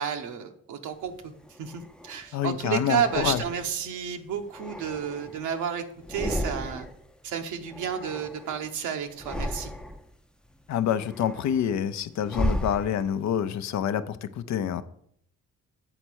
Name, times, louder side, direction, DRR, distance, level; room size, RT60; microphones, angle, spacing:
voice 1, 0.0-1.3 1.6-6.9 7.2-9.7, right 8 dB, 80° right, 7 dB, 1.1 m, -31 dB
sound 1, 1.1-2.3 2.9-3.9 4.4-5.6 5.9-7.1 7.3-8.7 9.1-10.1 10.6-13.3, equal, 5° left, 0.5 m, -35 dB
voice 2, 2.3-3.4 10.7-14.8, left 9 dB, 65° left, 12 dB, 0.6 m, -27 dB
8.0 x 4.4 x 6.3 m, 0.68 s
cardioid pair, 90°, 30 cm